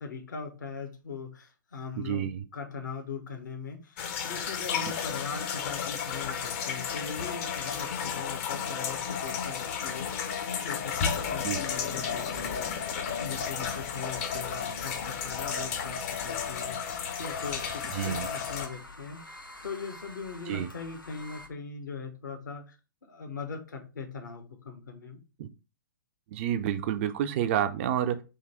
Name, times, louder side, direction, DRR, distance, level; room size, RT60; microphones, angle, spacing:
voice 1, 0.0-10.9 11.3-12.9 13.2-22.8 23.0-25.2, left 5 dB, 65° left, 5 dB, 1.1 m, -40 dB
voice 2, 2.0-2.4 11.4-11.6 17.9-18.3 20.5-20.7 25.4-25.5 26.3-28.2, right 10 dB, 35° right, 10 dB, 0.4 m, -29 dB
sound 1, 4.0-18.7, left 7 dB, 40° left, 0.7 m, -33 dB
sound 2, 16.2-21.5, left 1 dB, 90° left, 0.8 m, -47 dB
3.7 x 2.8 x 4.3 m, 0.31 s
figure-of-eight pair, 115°, 11 cm